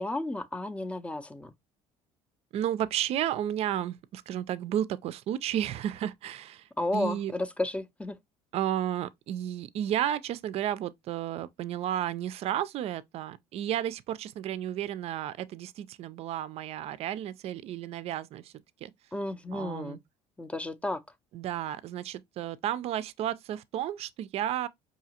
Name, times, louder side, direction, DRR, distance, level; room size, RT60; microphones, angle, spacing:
voice 1, 0.0-1.5 6.8-8.2 19.1-20.0 20.4-21.0, left 2 dB, 10° left, 0.5 m, -32 dB
voice 2, 2.5-7.3 8.5-18.5 18.8-18.9 19.5-20.0 21.3-24.7, right 11 dB, 55° right, 0.4 m, -32 dB
4.8 x 2.7 x 2.8 m
cardioid pair, 100°, 12 cm